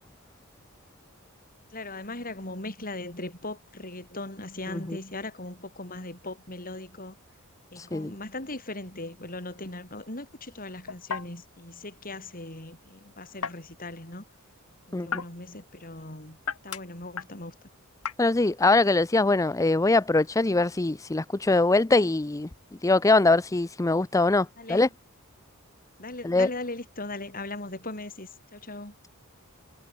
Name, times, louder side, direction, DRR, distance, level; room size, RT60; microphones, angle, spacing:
voice 1, 1.7-7.2 7.7-14.3 14.9-16.4 16.6-17.5 24.6-24.9 26.0-28.9, left 2 dB, 40° left, 7.4 m, -39 dB
voice 2, 7.8-8.1 14.9-15.1 18.2-22.5 22.8-24.9 26.2-26.5, left 2 dB, 15° left, 0.5 m, -22 dB
sound 1, 8.5-21.5, left 6 dB, 85° left, 1.5 m, -41 dB
head